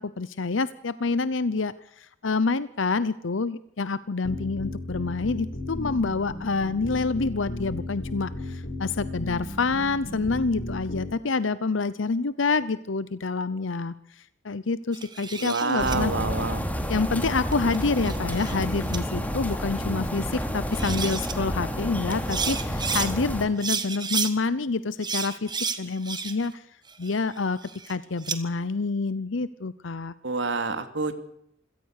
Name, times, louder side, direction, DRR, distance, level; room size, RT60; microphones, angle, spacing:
voice 1, 0.0-13.9 14.4-16.1 16.9-26.6 27.0-27.6 27.9-30.1, left 4 dB, 70° left, 16 dB, 0.8 m, -27 dB
sound 1, 4.2-11.1, left 1 dB, 55° left, 5.9 m, -35 dB
sound 2, 14.9-16.0 17.5-18.6 18.9-19.0 20.4-20.5 20.7-21.3 22.1-23.1 23.6-24.3 25.0-26.5 26.9-28.4, right 6 dB, 20° right, 1.7 m, -31 dB
voice 2, 15.4-16.6 30.2-31.1, right 3 dB, 65° right, 9 dB, 2.7 m, -27 dB
sound 3, 15.8-23.5, equal, 10° left, 3.0 m, -30 dB
27.0 x 17.5 x 6.6 m, 0.75 s
head